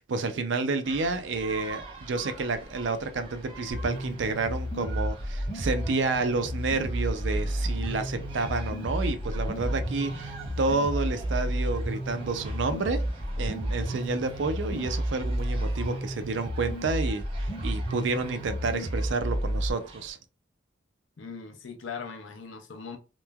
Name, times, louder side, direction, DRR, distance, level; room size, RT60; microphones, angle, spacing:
voice 1, 0.1-13.0 13.4-20.2, right 3 dB, 70° right, 0.4 m, -30 dB
sound 1, 0.8-20.1, right 1 dB, 30° right, 0.8 m, -44 dB
sound 2, 3.7-19.7, equal, 45° left, 1.0 m, -31 dB
voice 2, 21.2-23.0, left 5 dB, 85° left, 0.6 m, -40 dB
3.0 x 2.1 x 2.2 m
head